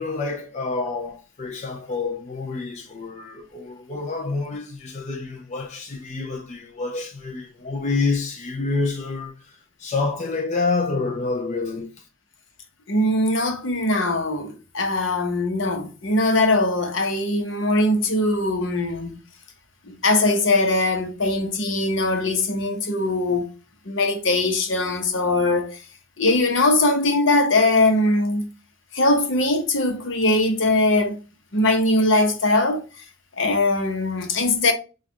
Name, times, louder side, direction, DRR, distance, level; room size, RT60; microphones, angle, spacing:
voice 1, 0.0-11.9, left 3 dB, 35° left, 0.5 m, -28 dB
voice 2, 12.9-19.2 19.9-23.4 23.9-25.8 26.2-28.5 28.9-31.2 31.5-33.0 33.4-34.7, left 2 dB, 65° left, 0.9 m, -21 dB
6.3 x 2.4 x 2.9 m
head